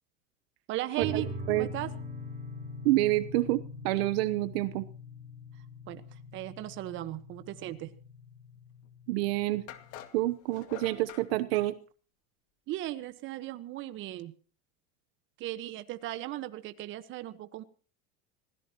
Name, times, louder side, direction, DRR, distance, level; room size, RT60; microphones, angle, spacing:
voice 1, 0.7-1.3 1.6-1.9 5.9-6.0 6.3-7.9 12.7-14.3 15.4-17.6, right 15 dB, 40° right, 11 dB, 1.4 m, -37 dB
sound 1, 1.0-10.0, left 1 dB, 20° right, 6.6 m, -43 dB
voice 2, 2.8-4.9 9.1-9.6 10.1-11.7, right 18 dB, 70° right, 13 dB, 1.1 m, -28 dB
sound 2, 8.8-8.9 9.7-11.3, left 11 dB, 50° left, 2.1 m, -46 dB
26.0 x 17.0 x 3.0 m, 0.39 s
supercardioid pair, 155°, 31 cm